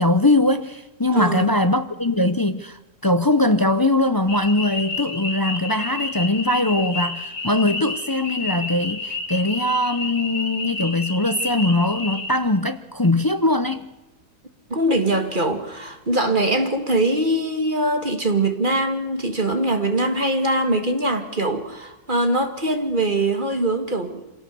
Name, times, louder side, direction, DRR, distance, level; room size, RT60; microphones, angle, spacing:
voice 1, 0.0-13.9, left 2 dB, 30° left, 0.4 m, -21 dB
voice 2, 1.1-1.5 14.7-24.2, right 1 dB, 30° right, 2.0 m, -22 dB
sound 1, 4.3-12.3, left 3 dB, 70° left, 4.2 m, -30 dB
26.5 x 17.5 x 6.9 m
omnidirectional pair, 1.7 m